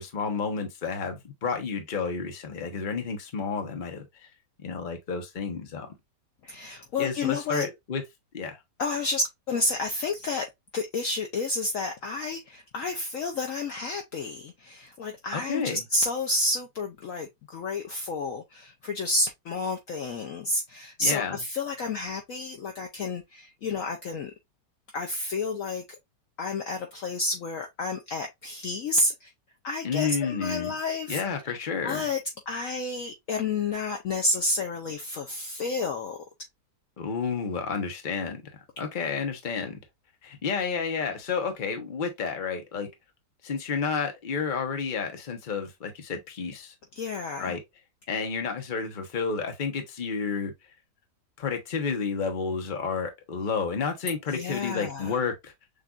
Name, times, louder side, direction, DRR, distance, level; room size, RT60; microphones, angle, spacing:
voice 1, 0.0-4.3 4.6-5.9 7.0-8.0 8.3-8.6 15.3-15.8 21.0-21.4 29.8-30.7 31.1-32.0 37.0-39.8 40.2-42.9 43.4-46.7 47.4-47.6 48.1-50.5 51.4-55.5, left 5 dB, 35° left, 0.9 m, -31 dB
voice 2, 6.4-7.7 8.8-10.5 10.7-24.3 24.9-25.8 26.4-29.3 29.6-31.5 31.8-32.2 32.5-36.2 46.9-47.6 54.3-55.2, left 2 dB, 60° left, 0.9 m, -30 dB
6.6 x 2.6 x 2.4 m
omnidirectional pair, 1.8 m